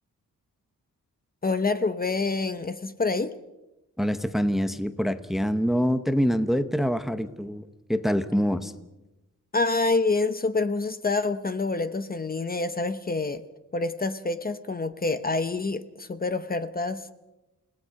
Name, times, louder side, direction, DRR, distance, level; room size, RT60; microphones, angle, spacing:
voice 1, 1.4-3.3 9.5-13.4 13.7-17.1, left 3 dB, 25° left, 11 dB, 0.9 m, -27 dB
voice 2, 4.0-7.6 7.9-8.7, equal, ahead, 10 dB, 0.9 m, -25 dB
29.5 x 18.0 x 5.8 m, 0.99 s
wide cardioid pair, 170°, 32 cm